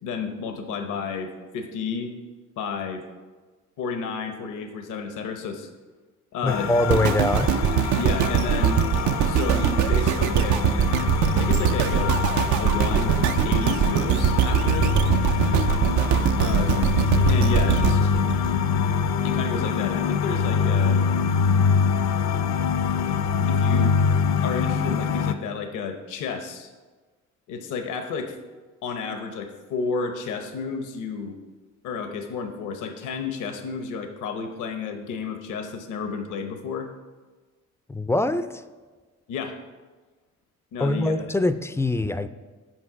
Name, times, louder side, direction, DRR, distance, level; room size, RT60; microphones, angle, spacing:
voice 1, 0.0-2.1 2.6-3.0 3.8-5.7 6.3-6.7 8.0-8.9 9.2-10.9 11.3-12.2 12.5-14.9 16.3-16.7 17.3-18.1 19.2-21.0 23.5-24.2 24.4-26.7 27.5-28.3 28.8-31.4 31.8-36.9 39.3-39.6 40.7-41.3, left 5 dB, 85° left, 6 dB, 0.9 m, -31 dB
voice 2, 6.4-7.5 37.9-38.6 40.8-42.3, left 2 dB, 10° left, 12 dB, 0.3 m, -23 dB
sound 1, 6.5-25.3, left 6 dB, 65° left, 0.5 m, -24 dB
sound 2, 6.9-19.1 19.6-19.7, right 9 dB, 75° right, 0.5 m, -22 dB
7.7 x 5.7 x 4.7 m, 1.3 s
cardioid pair, 90°, 30 cm